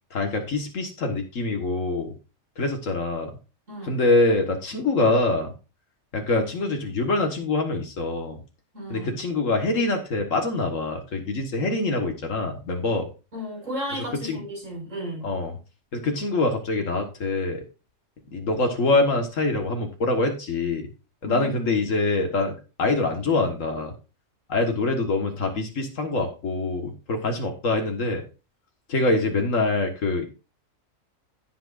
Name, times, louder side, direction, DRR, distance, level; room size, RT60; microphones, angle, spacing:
voice 1, 0.1-2.1 2.6-3.3 3.9-5.5 6.1-8.4 8.9-13.1 14.3-14.4 15.2-15.5 15.9-17.6 18.3-20.9 21.2-23.9 24.5-28.2 28.9-30.3, left 2 dB, 80° left, 3 dB, 1.8 m, -24 dB
voice 2, 8.7-9.2 13.3-15.2 21.2-21.8, left 1 dB, 80° right, -2 dB, 6.1 m, -34 dB
16.5 x 6.0 x 2.5 m, 0.31 s
omnidirectional pair, 1.3 m